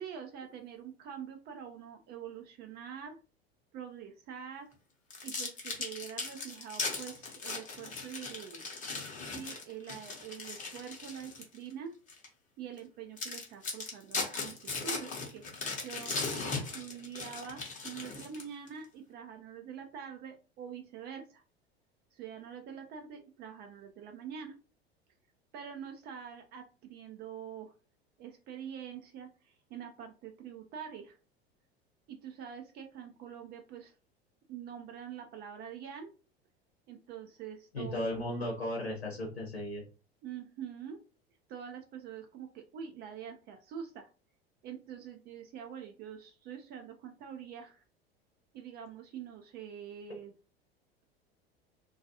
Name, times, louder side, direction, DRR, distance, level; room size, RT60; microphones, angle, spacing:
voice 1, 0.0-3.2 3.7-4.7 5.2-8.7 9.3-12.0 12.6-21.4 22.1-24.6 25.5-27.7 28.2-31.2 32.1-33.9 34.5-36.1 36.9-38.2 40.2-41.0 41.5-44.1 44.6-47.8 48.5-50.3, right 8 dB, 30° right, 5 dB, 0.4 m, -45 dB
sound 1, 5.1-11.6 12.1-12.3 12.8-12.9 13.2-18.7, left 4 dB, 25° left, 0.8 m, -38 dB
voice 2, 37.7-39.8, left 1 dB, 85° left, -2 dB, 0.9 m, -35 dB
2.3 x 2.2 x 2.7 m, 0.33 s
figure-of-eight pair, 75°, 31 cm